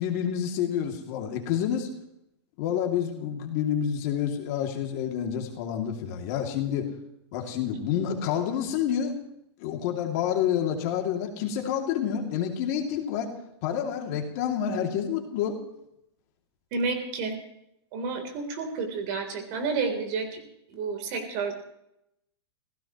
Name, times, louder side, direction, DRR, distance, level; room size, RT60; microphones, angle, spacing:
voice 1, 0.0-1.9 2.6-6.9 7.3-9.2 9.6-13.3 13.6-15.6, left 9 dB, 35° left, 2 dB, 2.5 m, -28 dB
voice 2, 16.7-17.3 17.9-20.3 20.7-21.5, right 4 dB, 35° right, 5 dB, 3.6 m, -30 dB
28.0 x 16.5 x 3.1 m, 0.80 s
hypercardioid pair, 165°, 14 cm